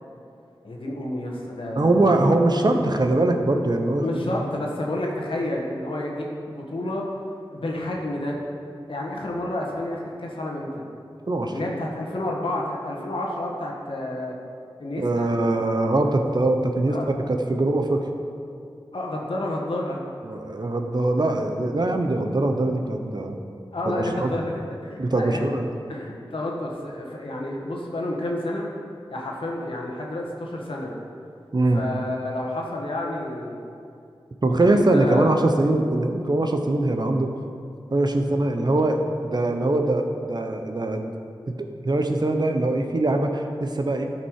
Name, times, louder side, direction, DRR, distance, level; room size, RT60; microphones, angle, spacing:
voice 1, 0.6-2.7 4.0-7.0 7.5-8.4 8.9-10.8 11.5-14.3 14.8-15.3 16.9-17.1 17.9-18.0 18.9-20.0 23.7-25.4 25.9-28.7 29.1-30.9 31.7-33.6 34.5-35.4, left 1 dB, 75° left, -1 dB, 1.6 m, -30 dB
voice 2, 1.7-4.1 11.3-11.5 15.0-17.0 17.3-18.0 20.2-23.4 23.9-24.3 25.0-25.7 31.5-31.8 34.4-37.3 37.9-41.1 41.5-44.1, right 2 dB, 50° right, 4 dB, 0.9 m, -22 dB
12.0 x 5.8 x 4.8 m, 2.4 s
cardioid pair, 45°, 9 cm